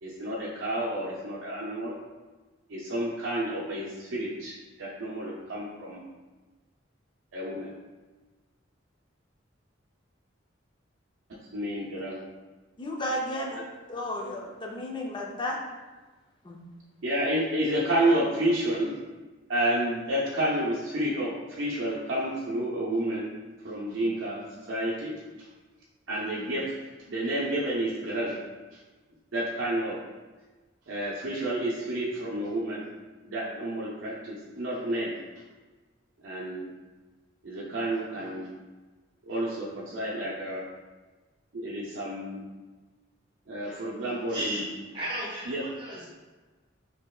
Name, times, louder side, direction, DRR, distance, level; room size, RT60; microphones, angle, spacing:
voice 1, 0.0-1.9 2.7-6.0 7.3-7.7 11.5-12.2 17.0-19.0 19.5-23.4 23.6-25.1 26.1-26.6 27.1-28.3 29.3-30.0 30.9-32.8 33.2-35.2 36.2-36.7 37.4-38.5 39.3-40.6 41.5-42.4 43.5-44.6 45.5-45.6, right 1 dB, 75° right, -5 dB, 0.5 m, -30 dB
voice 2, 12.8-13.6 13.9-15.6 16.5-16.6, left 1 dB, 25° left, -1 dB, 0.5 m, -33 dB
voice 3, 44.3-44.7 44.9-46.1, right 1 dB, 25° right, -6 dB, 1.1 m, -34 dB
4.2 x 2.8 x 2.3 m, 1.3 s
head